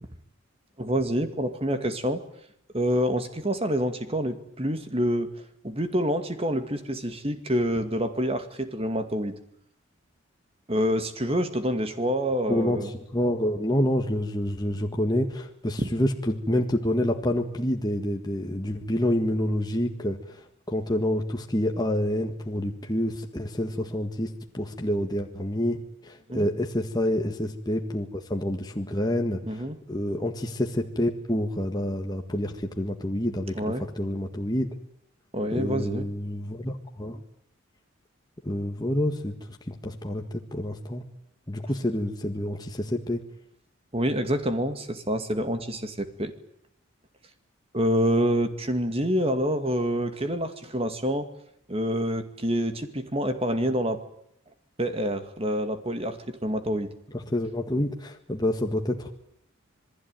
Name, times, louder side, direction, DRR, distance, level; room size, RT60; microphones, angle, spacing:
voice 1, 0.8-2.2 2.7-5.3 5.6-9.3 10.7-12.9 26.3-26.5 29.4-29.8 33.6-33.8 35.3-36.1 43.9-46.3 47.7-51.3 51.7-54.0 54.8-56.9, equal, 30° right, 9 dB, 2.2 m, -27 dB
voice 2, 12.5-34.7 35.5-37.2 38.4-39.4 39.7-41.0 41.5-43.2 57.1-59.1, left 1 dB, 20° left, 3 dB, 1.8 m, -28 dB
27.5 x 20.0 x 9.2 m, 0.72 s
head